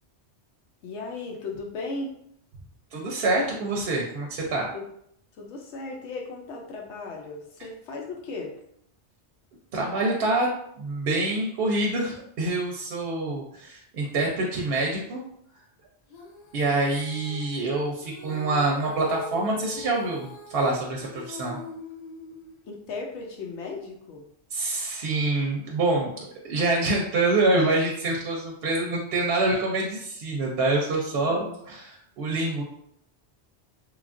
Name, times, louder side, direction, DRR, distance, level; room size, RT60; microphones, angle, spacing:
voice 1, 0.8-2.2 4.7-4.9 5.4-8.6 22.6-24.3 31.3-31.6, left 3 dB, 85° left, 0 dB, 0.9 m, -36 dB
voice 2, 2.9-4.7 9.7-10.5 10.8-15.2 16.5-21.6 24.5-32.6, right 2 dB, 65° right, -1 dB, 0.7 m, -26 dB
Female singing, 16.1-22.6, left 1 dB, 50° left, 0.5 m, -42 dB
3.1 x 2.3 x 2.4 m, 0.71 s
omnidirectional pair, 1.2 m